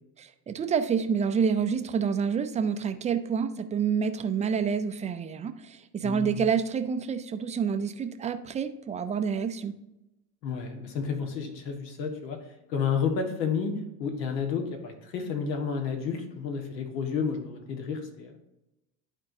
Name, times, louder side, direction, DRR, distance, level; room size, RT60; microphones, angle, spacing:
voice 1, 0.2-9.8, right 6 dB, 15° right, 9 dB, 0.4 m, -28 dB
voice 2, 6.0-6.5 10.4-13.7 14.0-18.4, left 6 dB, 80° left, 5 dB, 1.7 m, -31 dB
11.5 x 4.4 x 2.7 m, 0.91 s
supercardioid pair, 100°, 50 cm